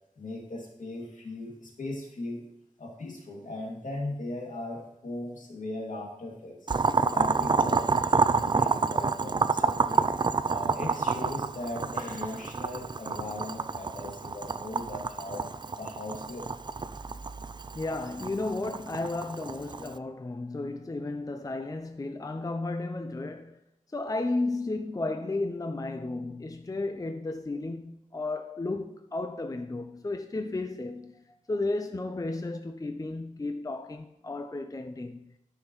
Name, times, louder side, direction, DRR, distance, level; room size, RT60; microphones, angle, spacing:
voice 1, 0.2-2.4 2.8-6.7 7.1-10.1 10.4-15.4 15.8-16.5, left 2 dB, 70° left, 2.4 m, -38 dB
Boiling, 6.7-19.9, right 4 dB, 35° right, 0.4 m, -28 dB
voice 2, 17.7-23.6 23.9-31.2 31.5-35.3, left 2 dB, 25° left, 0.5 m, -33 dB
13.0 x 5.8 x 3.1 m
wide cardioid pair, 65°, 14 cm